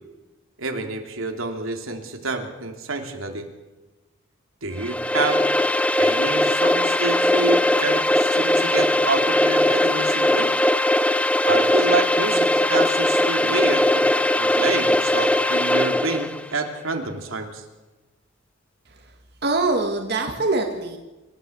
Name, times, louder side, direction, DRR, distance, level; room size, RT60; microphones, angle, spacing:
voice 1, 0.6-3.5 4.6-5.4 5.9-10.5 11.4-14.1 14.4-17.6, right 3 dB, 80° right, 4 dB, 3.0 m, -28 dB
sound 1, 4.8-16.4, left 1 dB, 5° left, 0.6 m, -20 dB
voice 2, 19.4-21.0, right 3 dB, 50° right, 3 dB, 2.2 m, -23 dB
26.5 x 14.0 x 8.0 m, 1.1 s
head